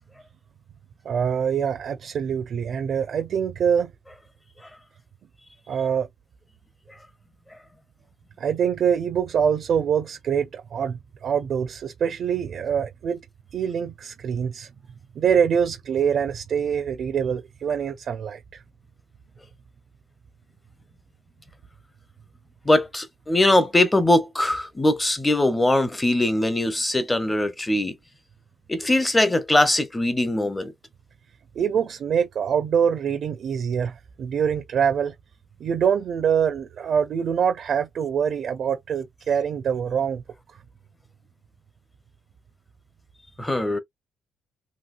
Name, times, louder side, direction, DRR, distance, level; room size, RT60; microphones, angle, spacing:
voice 1, 1.0-3.9 5.7-6.1 8.4-13.2 13.5-14.7 15.1-18.6 31.6-35.1 35.6-40.2, right 7 dB, 60° right, 0.6 m, -24 dB
voice 2, 22.7-27.9 28.7-30.7 43.4-43.8, left 1 dB, 15° left, 0.8 m, -21 dB
3.0 x 2.9 x 2.5 m
cardioid pair, 90°, 0 cm